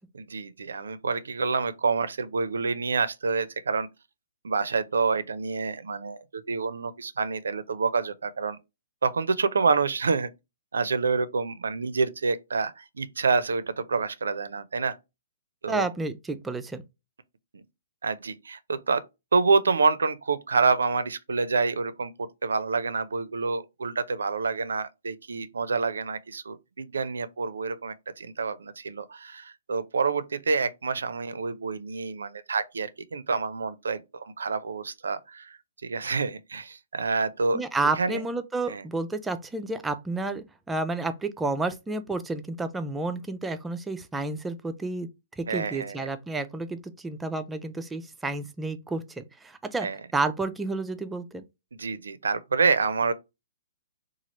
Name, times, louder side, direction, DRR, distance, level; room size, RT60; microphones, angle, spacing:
voice 1, 0.1-3.9 4.4-8.6 9.0-10.3 10.7-15.0 15.6-15.9 17.5-17.6 18.0-19.0 19.3-37.6 38.0-38.2 38.7-38.8 45.5-46.0 49.8-50.0 51.7-53.1, right 4 dB, 90° right, 0.4 m, -27 dB
voice 2, 15.7-16.8 37.5-45.1 45.4-51.4, right 3 dB, 10° right, 0.3 m, -31 dB
3.0 x 2.4 x 2.8 m
hypercardioid pair, 150°, 0 cm